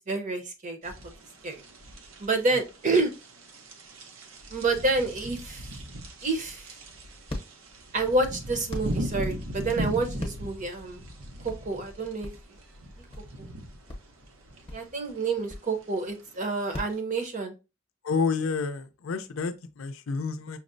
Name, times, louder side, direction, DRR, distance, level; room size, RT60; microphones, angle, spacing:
voice 1, 0.1-0.9 1.4-1.6 2.2-3.1 4.5-5.7 6.2-6.7 7.9-11.1 11.4-12.3 13.4-13.5 14.7-17.5, right 3 dB, 40° right, 0.7 m, -28 dB
sound 1, 0.8-17.0, right 1 dB, 85° right, 0.7 m, -39 dB
sound 2, 6.2-17.0, left 1 dB, 25° left, 0.8 m, -41 dB
voice 2, 18.0-20.6, left 5 dB, 80° left, 0.5 m, -29 dB
5.7 x 2.1 x 2.5 m
head